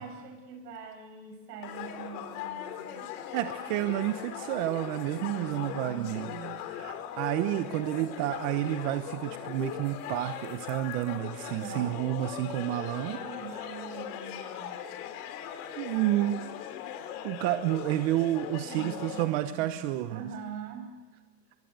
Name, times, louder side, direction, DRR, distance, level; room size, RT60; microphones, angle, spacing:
voice 1, 0.0-3.0 5.4-6.6 11.4-12.0 13.0-14.8 18.5-20.9, right 6 dB, 70° right, 6 dB, 7.5 m, -44 dB
sound 1, 1.6-19.3, left 9 dB, 60° left, 3.5 m, -39 dB
voice 2, 3.3-6.3 6.6-13.2 15.7-16.4 17.2-20.3, right 14 dB, 50° right, 9 dB, 1.2 m, -30 dB
24.5 x 23.0 x 8.1 m, 1.3 s
supercardioid pair, 165°, 50 cm